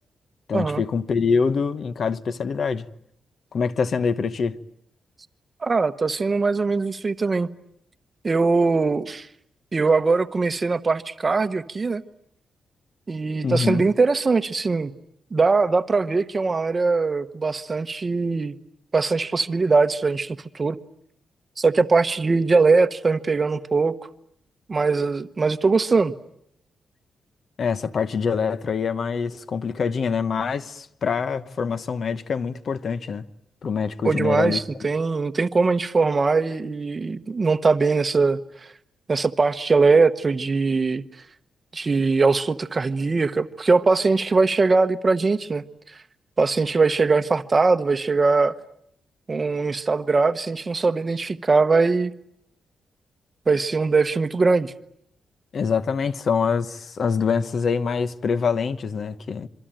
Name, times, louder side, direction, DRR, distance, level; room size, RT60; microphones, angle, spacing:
voice 1, 0.5-2.9 3.5-4.6 13.4-13.9 27.6-33.2 33.6-34.6 55.5-59.5, left 5 dB, 45° left, 1.0 m, -25 dB
voice 2, 5.6-7.5 8.2-9.3 9.7-12.0 13.1-14.9 15.3-18.5 18.9-20.8 21.6-23.9 24.7-26.1 34.0-38.4 39.1-41.0 41.7-45.6 46.4-48.5 49.3-52.1 53.5-54.7, right 4 dB, 25° right, 1.0 m, -21 dB
27.0 x 24.0 x 9.0 m
wide cardioid pair, 165°, 0 cm